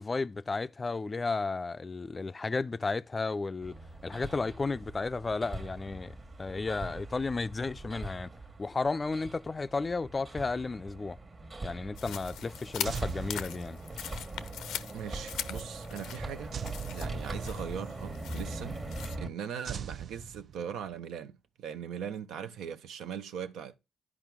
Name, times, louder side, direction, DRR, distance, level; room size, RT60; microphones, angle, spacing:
voice 1, 0.0-3.8 4.0-6.1 6.4-8.3 8.6-11.2 11.6-13.8, left 3 dB, 25° left, 0.4 m, -33 dB
Hammer, 3.6-19.3, right 2 dB, 30° right, 1.3 m, -41 dB
sound 1, 12.0-19.2, left 10 dB, 85° left, 0.6 m, -42 dB
sound 2, 12.8-14.1 16.5-17.8 19.6-20.9, right 8 dB, 55° right, 0.3 m, -41 dB
voice 2, 14.9-16.6 16.9-18.8 19.2-23.8, right 8 dB, 80° right, 0.8 m, -40 dB
11.0 x 4.9 x 3.5 m
cardioid pair, 90°, 0 cm